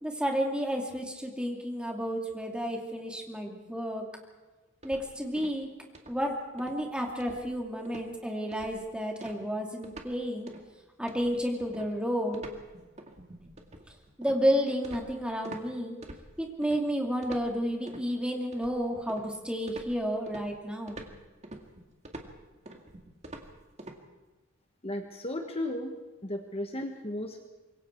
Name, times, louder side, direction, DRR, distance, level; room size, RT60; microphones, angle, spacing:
voice 1, 0.0-4.0 4.8-5.7 6.1-10.5 11.0-12.4 14.2-15.9 16.4-21.1, equal, 5° right, 1 dB, 2.7 m, -31 dB
sound 1, 4.8-5.7 5.9-6.3 6.6-6.8 7.2-7.6 7.9-8.1 8.5-8.9 9.2-10.2 10.5-10.7 11.1-15.7 16.0-16.8 17.2-18.1 18.5-19.4 19.7-24.0, right 1 dB, 35° right, 2.1 m, -46 dB
voice 2, 24.8-26.0 26.2-27.5, left 1 dB, 30° left, 5 dB, 1.4 m, -35 dB
25.5 x 22.5 x 4.6 m, 1.2 s
head